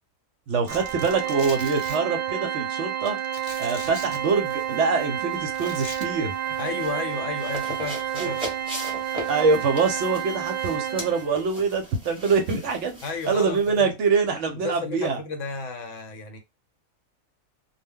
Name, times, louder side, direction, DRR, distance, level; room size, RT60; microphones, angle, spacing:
voice 1, 0.5-3.2 3.6-6.3 8.2-8.3 9.3-13.0 13.3-15.2, right 4 dB, 65° right, 0.8 m, -24 dB
Domestic sounds home sounds, 0.7-2.0 3.1-4.2 5.5-6.1 7.4-7.6 8.5-8.8, left 2 dB, 40° left, 0.4 m, -40 dB
Organ, 0.7-11.4, right 10 dB, 85° right, 0.4 m, -30 dB
sound 1, 3.5-13.8, equal, 5° right, 0.7 m, -40 dB
voice 2, 6.5-8.4 13.0-13.9 14.6-16.4, left 4 dB, 70° left, 0.9 m, -33 dB
2.2 x 2.1 x 3.5 m
omnidirectional pair, 1.5 m